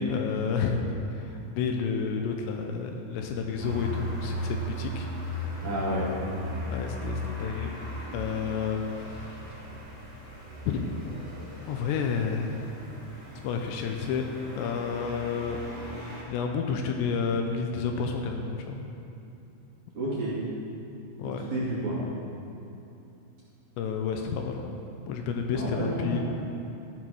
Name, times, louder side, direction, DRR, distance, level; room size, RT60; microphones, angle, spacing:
voice 1, 0.0-5.6 6.7-7.7 8.1-9.4 10.7-11.1 11.7-12.7 13.4-14.3 14.6-15.9 16.3-18.9 21.2-21.4 23.8-24.7 25.1-26.2, left 5 dB, 85° left, 3 dB, 2.8 m, -30 dB
sound 1, 3.6-16.2, left 1 dB, 20° right, 0.7 m, -37 dB
voice 2, 5.6-6.1 19.9-20.4 21.2-22.0 25.5-26.2, right 1 dB, 45° right, -9 dB, 3.3 m, -30 dB
14.0 x 6.1 x 6.1 m, 2.8 s
omnidirectional pair, 5.3 m